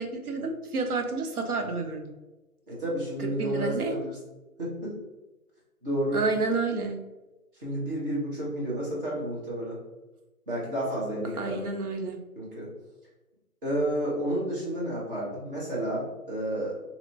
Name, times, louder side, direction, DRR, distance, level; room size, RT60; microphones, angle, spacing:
voice 1, 0.0-2.1 3.2-3.9 6.1-7.0 11.4-12.2, right 3 dB, 70° right, 5 dB, 0.8 m, -30 dB
voice 2, 2.7-4.2 4.6-5.0 5.8-6.2 7.6-9.8 10.5-11.6 12.4-12.7 13.6-16.7, right 1 dB, 35° right, -6 dB, 1.3 m, -31 dB
3.0 x 2.8 x 2.7 m, 1.1 s
hypercardioid pair, 165°, 46 cm